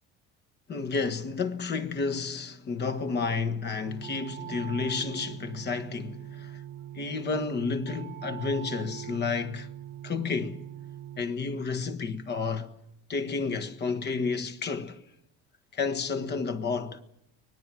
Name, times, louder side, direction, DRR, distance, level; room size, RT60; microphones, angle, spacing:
voice 1, 0.7-6.6 6.9-9.7 10.0-10.6 11.2-12.7 13.1-15.0 15.7-17.0, left 4 dB, 35° left, 1.6 m, -31 dB
sound 1, 3.9-11.2, right 11 dB, 30° right, 1.3 m, -41 dB
24.5 x 19.5 x 7.8 m
cardioid pair, 130°, 30 cm